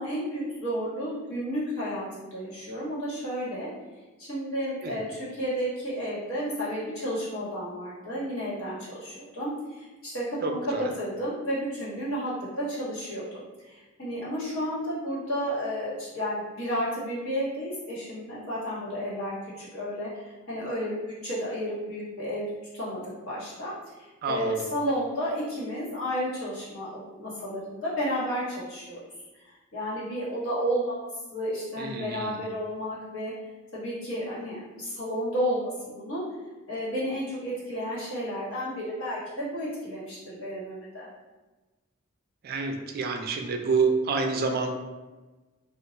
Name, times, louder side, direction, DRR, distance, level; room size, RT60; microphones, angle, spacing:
voice 1, 0.0-3.7 4.2-13.2 13.6-21.0 21.2-33.3 33.7-36.2 36.7-41.1, equal, 80° left, -9 dB, 1.4 m, -32 dB
voice 2, 10.4-10.8 24.2-24.5 31.8-32.3 42.4-44.7, right 4 dB, 50° right, 4 dB, 0.4 m, -28 dB
2.3 x 2.3 x 3.9 m, 1.2 s
head